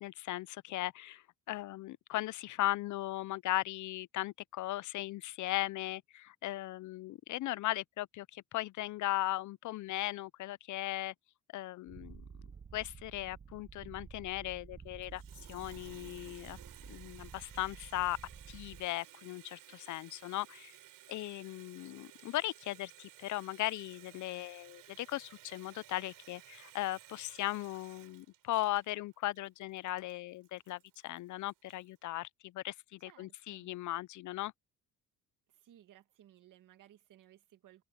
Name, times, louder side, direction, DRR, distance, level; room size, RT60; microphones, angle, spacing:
voice 1, 0.0-11.1 11.5-12.2 12.7-15.2 15.5-16.6 16.9-18.2 18.5-20.8 21.1-34.5, left 16 dB, 60° left, 0.4 m, -38 dB
Purr, 11.9-18.9, right 6 dB, 20° right, 0.5 m, -51 dB
Water tap faucet, 15.0-31.9, right 14 dB, 85° right, 7.4 m, -57 dB
voice 2, 33.1-33.7 35.5-37.8, right 12 dB, 65° right, 2.1 m, -61 dB
cardioid pair, 125°, 33 cm